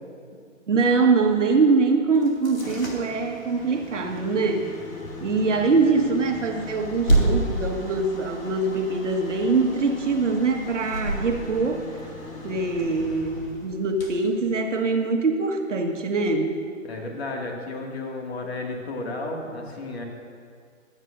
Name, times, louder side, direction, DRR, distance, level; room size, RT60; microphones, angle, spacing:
voice 1, 0.7-4.7 5.2-11.8 12.4-16.6, right 4 dB, 65° right, 2 dB, 1.6 m, -23 dB
sound 1, 2.2-15.1, right 1 dB, 80° left, 2.6 m, -31 dB
voice 2, 16.8-20.0, left 2 dB, 50° left, 1 dB, 2.2 m, -33 dB
24.0 x 8.9 x 2.6 m, 2.1 s
figure-of-eight pair, 130°, 39 cm